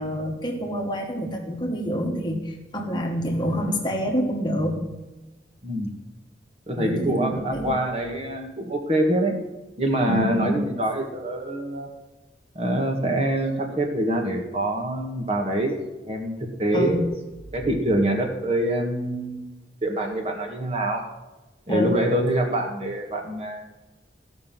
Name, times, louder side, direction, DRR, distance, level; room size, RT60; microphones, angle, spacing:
voice 1, 0.0-4.8 6.8-7.8 10.1-10.6 16.7-17.0 21.7-21.9, equal, 25° left, 1 dB, 1.4 m, -27 dB
voice 2, 6.7-9.4 9.8-11.9 12.6-15.8 16.1-17.1 17.5-19.5 19.8-21.0 21.7-23.6, right 1 dB, 35° right, 3 dB, 1.8 m, -25 dB
15.0 x 6.2 x 7.5 m, 1.1 s
head